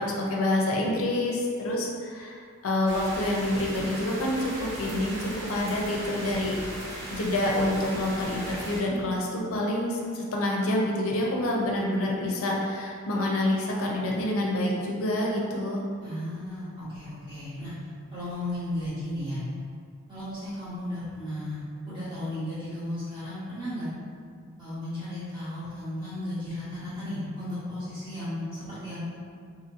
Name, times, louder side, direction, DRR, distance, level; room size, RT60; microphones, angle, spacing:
voice 1, 0.0-6.6 7.1-15.8, left 1 dB, 75° left, -1 dB, 0.4 m, -27 dB
sound 1, 2.9-8.8, right 1 dB, 50° right, 0.7 m, -38 dB
voice 2, 16.0-17.7 18.1-19.4 20.1-23.9 24.6-29.0, left 1 dB, 20° right, -13 dB, 1.2 m, -35 dB
2.8 x 2.5 x 2.7 m, 2.1 s
head